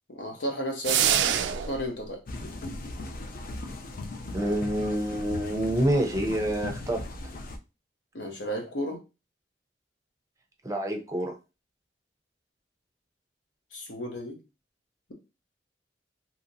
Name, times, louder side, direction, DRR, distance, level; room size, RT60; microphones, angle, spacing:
voice 1, 0.1-2.2 8.1-9.0 13.7-14.4, equal, 85° left, 2 dB, 0.9 m, -33 dB
sound 1, 0.8-1.9, right 9 dB, 85° right, 0.3 m, -24 dB
sound 2, 2.3-7.6, left 2 dB, 50° left, 0.5 m, -38 dB
voice 2, 4.3-7.0 10.6-11.3, right 1 dB, 20° right, 3 dB, 0.5 m, -27 dB
2.9 x 2.8 x 2.6 m, 0.28 s
head